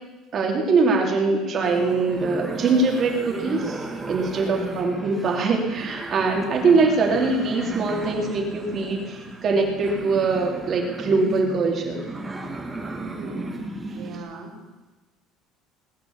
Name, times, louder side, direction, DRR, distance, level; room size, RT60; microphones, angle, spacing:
voice 1, 0.3-12.0, right 3 dB, 35° right, 1 dB, 2.9 m, -22 dB
sound 1, 1.6-14.2, right 2 dB, 10° right, 1.8 m, -35 dB
voice 2, 4.3-4.8 6.5-6.9 12.9-14.5, right 3 dB, 55° right, -6 dB, 4.0 m, -37 dB
19.5 x 9.9 x 7.2 m, 1.2 s
cardioid pair, 160°, 0 cm